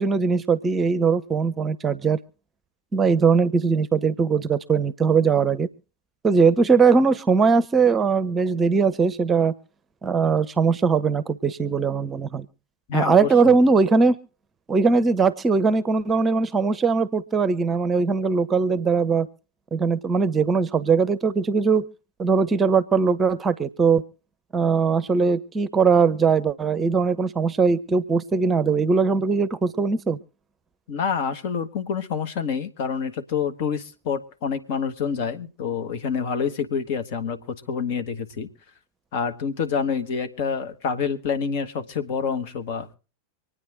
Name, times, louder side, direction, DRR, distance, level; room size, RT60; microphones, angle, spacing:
voice 1, 0.0-2.2 2.9-5.7 6.2-9.5 10.0-12.5 12.9-14.2 14.7-19.3 19.7-21.9 22.2-24.0 24.5-30.2, right 5 dB, 20° right, 15 dB, 0.8 m, -20 dB
voice 2, 12.9-13.6 30.9-38.5 39.1-42.9, left 6 dB, 50° left, 8 dB, 1.6 m, -27 dB
25.5 x 9.7 x 3.8 m, 0.35 s
figure-of-eight pair, 90°, 0 cm